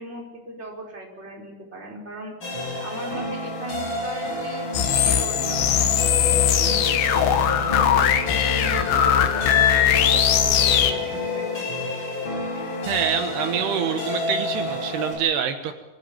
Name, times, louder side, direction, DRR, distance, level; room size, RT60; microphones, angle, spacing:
voice 1, 0.0-4.7 4.9-11.7, right 2 dB, 15° right, -2 dB, 4.9 m, -38 dB
sound 1, 2.4-15.1, left 2 dB, 25° left, 6.8 m, -29 dB
sound 2, 4.7-10.9, left 9 dB, 80° left, 3.5 m, -20 dB
voice 2, 12.9-15.7, right 8 dB, 75° right, 6 dB, 3.2 m, -26 dB
24.5 x 14.5 x 9.1 m, 1.1 s
omnidirectional pair, 4.7 m